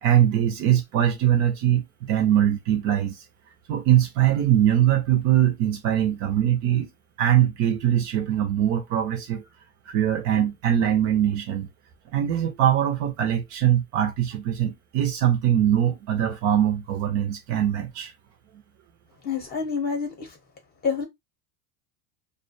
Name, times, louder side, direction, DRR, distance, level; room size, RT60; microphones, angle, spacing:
voice 1, 0.0-3.2 3.7-6.9 7.2-9.4 9.9-11.7 12.1-18.1, right 11 dB, 45° right, 0.5 m, -22 dB
voice 2, 19.2-20.4 20.8-21.0, left 5 dB, 25° left, 0.7 m, -27 dB
2.4 x 2.1 x 2.5 m
supercardioid pair, 140°, 42 cm